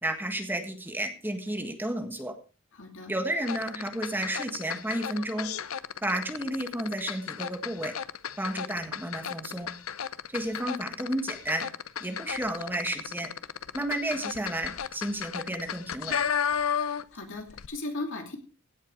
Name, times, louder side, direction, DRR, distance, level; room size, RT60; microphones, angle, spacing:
voice 1, 0.0-2.3 3.1-5.5 6.0-7.9 8.4-9.7 10.3-11.7 12.0-13.3 13.7-16.2, right 1 dB, 10° right, 5 dB, 1.6 m, -32 dB
voice 2, 2.7-3.1 17.1-18.4, left 2 dB, 65° left, 4 dB, 2.6 m, -36 dB
sound 1, 3.4-17.2 17.5-17.7, left 8 dB, 80° left, 0.7 m, -34 dB
16.5 x 7.3 x 4.8 m, 0.36 s
head